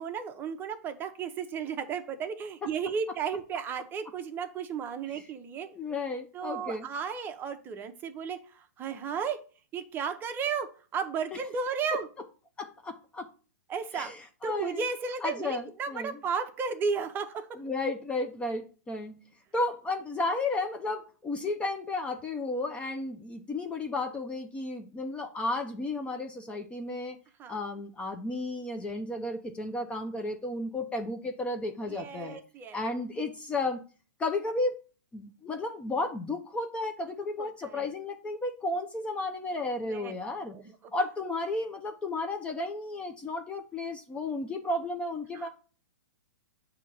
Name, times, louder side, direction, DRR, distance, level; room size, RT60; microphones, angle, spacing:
voice 1, 0.0-5.7 6.3-9.4 9.7-10.7 10.9-12.1 13.7-14.1 14.4-17.6 27.4-27.6 31.9-32.9 37.2-37.9 39.9-40.1 40.5-40.9 45.3-45.5, right 6 dB, 20° right, 8 dB, 0.7 m, -34 dB
voice 2, 5.7-6.9 11.9-12.0 12.6-13.3 13.9-14.2 14.4-14.8 15.2-16.1 17.6-19.2 19.5-27.2 27.5-32.4 32.7-33.8 34.2-34.8 35.1-40.6 40.9-45.5, left 2 dB, 10° left, 5 dB, 0.5 m, -33 dB
7.2 x 2.8 x 5.3 m, 0.37 s
hypercardioid pair, 140°, 10 cm